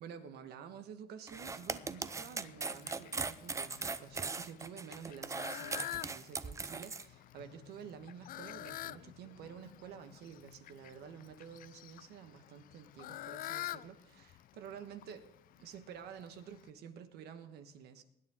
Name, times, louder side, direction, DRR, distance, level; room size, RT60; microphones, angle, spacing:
voice 1, 0.0-15.3 15.6-18.0, right 7 dB, 75° right, 9 dB, 1.3 m, -50 dB
Fowl, 1.3-16.7, left 14 dB, 55° left, 0.4 m, -49 dB
sound 1, 1.3-7.0, right 4 dB, 20° right, 0.5 m, -39 dB
20.0 x 8.8 x 3.6 m, 0.79 s
cardioid pair, 110°, 17 cm